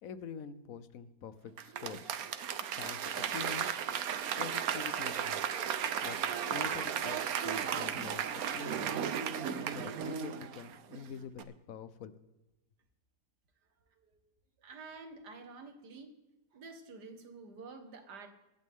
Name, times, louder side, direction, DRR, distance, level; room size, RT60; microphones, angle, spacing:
voice 1, 0.0-2.1 2.7-3.8 4.4-5.6 6.0-6.2 6.5-9.0 9.7-12.2, left 6 dB, 60° left, 13 dB, 1.2 m, -46 dB
Applause / Crowd, 1.6-11.0 11.4-11.5, right 8 dB, 65° right, 1.2 m, -35 dB
voice 2, 14.6-16.1 16.5-18.3, right 4 dB, 85° right, 6 dB, 2.1 m, -49 dB
24.5 x 9.4 x 3.7 m, 1.0 s
omnidirectional pair, 1.7 m